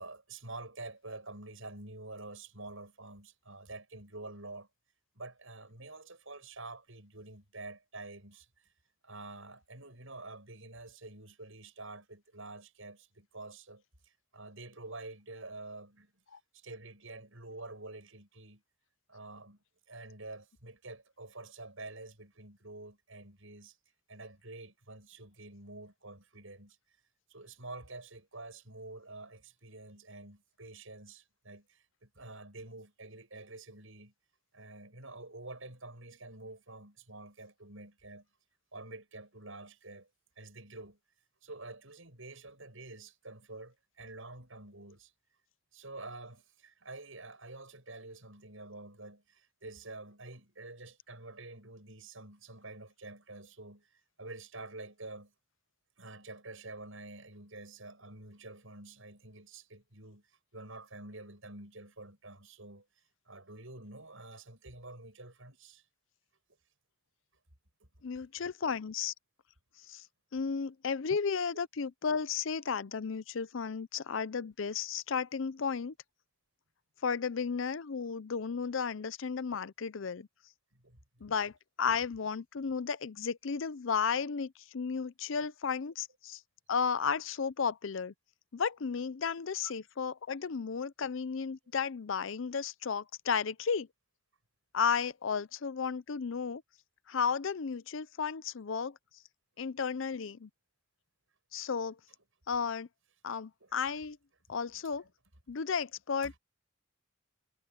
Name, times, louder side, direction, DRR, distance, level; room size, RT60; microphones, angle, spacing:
voice 1, 0.0-4.7 5.1-8.7 9.0-16.1 16.5-18.6 19.1-23.8 24.1-26.8 27.3-34.1 34.5-38.3 38.7-40.1 40.4-41.0 41.4-45.1 45.7-55.3 56.0-62.8 63.3-65.8 67.8-67.9 80.7-81.0 85.3-85.4 89.6-89.7 103.6-103.7 106.2-106.3, right 2 dB, 70° right, 7.7 m, -48 dB
voice 2, 68.0-69.1 69.9-70.1 70.3-75.9 77.0-80.3 81.2-81.5 81.8-86.4 86.7-88.1 88.5-93.9 94.7-96.6 97.1-99.0 99.6-100.5 101.5-102.0 102.5-102.9 103.2-104.2 104.5-105.0 105.5-106.4, left 6 dB, 65° left, 0.5 m, -33 dB
head